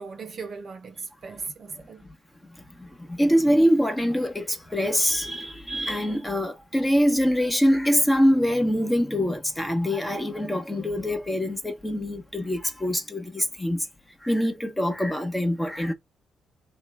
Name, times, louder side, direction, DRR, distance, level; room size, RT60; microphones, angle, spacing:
voice 1, 0.0-2.1, right 4 dB, 45° right, 0.9 m, -38 dB
voice 2, 2.8-13.8 14.2-15.9, equal, 10° left, 1.1 m, -24 dB
3.6 x 2.4 x 3.3 m
cardioid pair, 90°, 0 cm